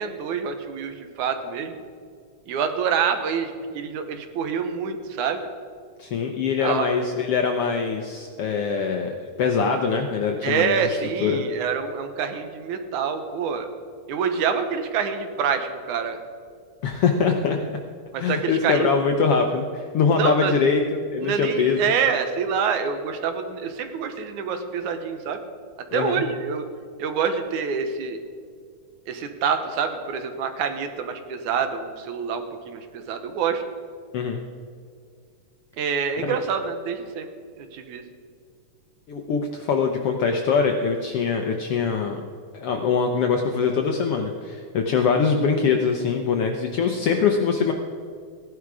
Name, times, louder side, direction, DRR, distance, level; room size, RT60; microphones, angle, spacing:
voice 1, 0.0-1.8 2.5-5.5 6.6-6.9 10.4-13.7 14.1-16.2 18.1-18.9 20.1-20.5 21.2-25.4 25.9-26.6 27.0-28.2 29.1-33.6 35.8-37.3 37.6-38.0, right 6 dB, 75° right, 7 dB, 2.4 m, -26 dB
voice 2, 6.0-11.4 16.8-17.8 18.2-21.8 25.9-26.2 34.1-34.4 36.3-36.4 39.1-42.2 42.5-47.7, left 5 dB, 70° left, 3 dB, 1.4 m, -23 dB
16.0 x 11.0 x 4.8 m, 2.2 s
omnidirectional pair, 3.6 m